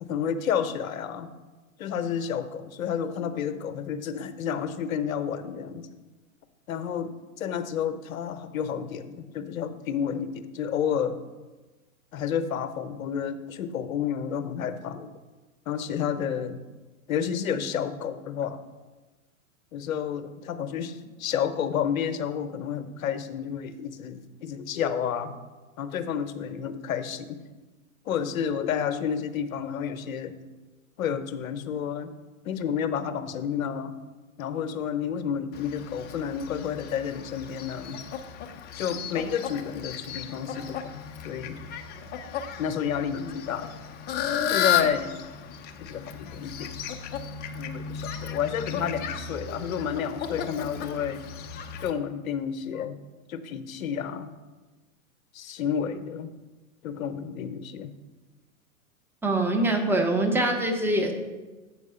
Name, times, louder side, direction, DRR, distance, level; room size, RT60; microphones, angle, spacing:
voice 1, 0.0-1.3 1.8-5.9 6.7-11.2 12.1-15.1 15.7-16.6 17.1-18.6 19.7-25.3 25.8-27.4 28.1-30.4 31.0-32.1 32.4-33.9 34.4-38.0 38.8-41.6 42.6-43.7 44.5-45.2 45.8-46.7 47.6-51.2 51.8-53.0 53.3-54.3 55.3-56.3 56.8-57.9, left 8 dB, 70° left, 11 dB, 0.8 m, -30 dB
Fowl, 35.5-51.9, left 8 dB, 25° left, 0.5 m, -34 dB
voice 2, 59.2-61.1, right 1 dB, 5° right, 3 dB, 0.8 m, -24 dB
8.1 x 4.7 x 5.6 m, 1.2 s
hypercardioid pair, 110°, 43 cm